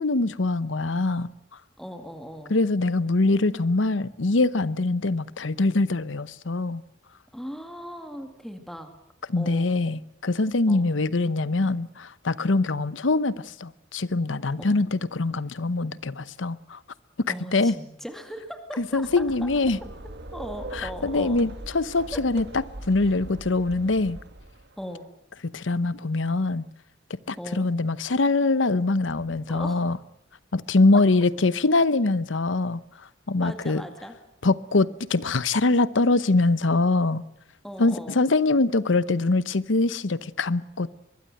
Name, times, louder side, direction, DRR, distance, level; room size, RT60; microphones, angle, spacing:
voice 1, 0.0-1.3 2.5-6.8 9.3-16.8 17.5-17.7 18.8-19.8 20.7-24.2 25.5-26.6 27.3-30.0 30.5-32.8 33.3-33.8 34.4-37.2 37.8-41.0, left 3 dB, 80° left, 0.9 m, -23 dB
voice 2, 1.8-2.5 7.3-8.9 9.4-9.7 10.7-10.9 14.6-14.8 17.3-19.5 20.3-21.4 22.1-22.2 24.8-25.0 27.4-27.7 29.5-29.8 30.9-31.0 33.4-34.1 37.6-38.2, equal, ahead, 2.3 m, -38 dB
sound 1, 18.8-24.8, right 1 dB, 60° right, 1.7 m, -41 dB
23.5 x 21.0 x 7.8 m
head